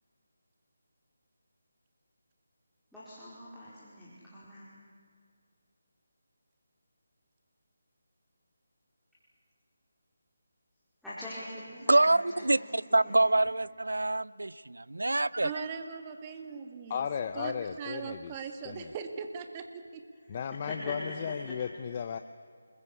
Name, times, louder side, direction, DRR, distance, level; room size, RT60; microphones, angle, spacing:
voice 1, 2.9-4.7 11.0-13.6 20.2-21.6, left 1 dB, ahead, 4.6 m, -44 dB
voice 2, 11.9-15.5, right 2 dB, 85° right, 0.6 m, -26 dB
voice 3, 15.4-17.1 17.3-20.0, right 6 dB, 25° right, 2.0 m, -40 dB
voice 4, 16.9-18.3 18.6-18.9 20.3-22.2, left 7 dB, 35° left, 0.8 m, -35 dB
28.5 x 21.0 x 8.6 m
figure-of-eight pair, 160°, 0 cm